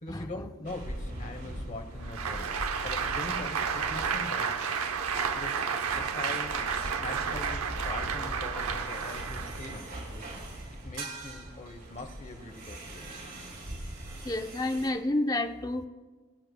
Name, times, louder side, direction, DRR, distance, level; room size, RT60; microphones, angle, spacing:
voice 1, 0.0-2.5 2.8-4.7 5.3-5.6 5.9-10.4 10.8-13.1, left 2 dB, 35° left, 6 dB, 1.0 m, -42 dB
sound 1, 0.6-14.9, right 1 dB, 60° right, 3.7 m, -41 dB
Applause, 2.0-9.8, right 6 dB, 85° right, 0.8 m, -32 dB
voice 2, 14.2-15.9, left 2 dB, 15° left, 6 dB, 0.5 m, -29 dB
25.0 x 8.8 x 2.2 m, 1.3 s
head